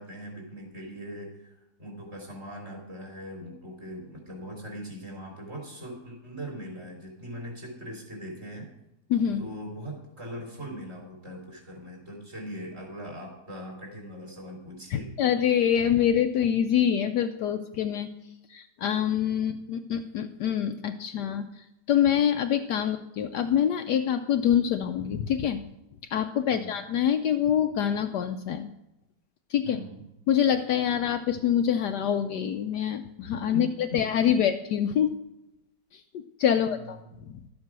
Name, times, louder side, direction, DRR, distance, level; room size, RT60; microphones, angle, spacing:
voice 1, 0.0-1.5 1.8-8.7 9.4-15.1 19.4-19.6 26.5-26.7 29.6-30.0 33.5-34.0 36.6-37.2, equal, 35° right, 0 dB, 3.8 m, -40 dB
voice 2, 9.1-9.4 14.9-18.1 18.5-25.6 26.1-28.7 29.5-29.8 30.3-35.1 35.9-37.4, left 9 dB, 70° left, 7 dB, 1.1 m, -26 dB
13.0 x 7.4 x 6.0 m, 0.92 s
omnidirectional pair, 2.0 m